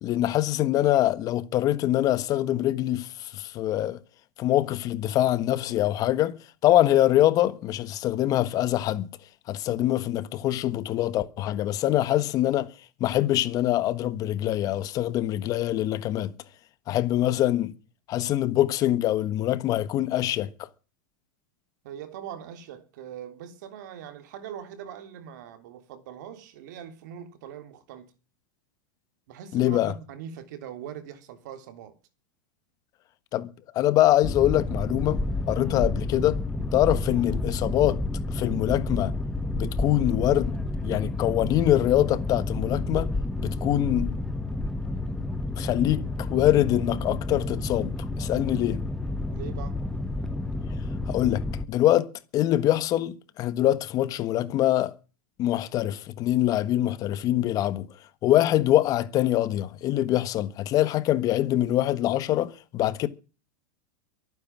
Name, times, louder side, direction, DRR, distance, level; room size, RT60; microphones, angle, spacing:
voice 1, 0.0-4.0 4.4-9.1 9.5-12.7 13.0-16.3 16.9-17.7 18.1-20.5 29.5-29.9 33.3-36.4 36.7-38.0 38.3-39.1 39.5-40.5 40.8-44.1 45.6-48.8 51.1-54.9 55.4-57.9 58.2-63.1, left 13 dB, 35° left, 1.4 m, -24 dB
voice 2, 21.8-28.1 29.3-32.0 49.3-49.8, right 9 dB, 65° right, 3.3 m, -41 dB
Boat Water vehicle, 34.2-51.7, left 2 dB, 5° left, 1.4 m, -30 dB
23.5 x 9.6 x 6.1 m
supercardioid pair, 140°, 10 cm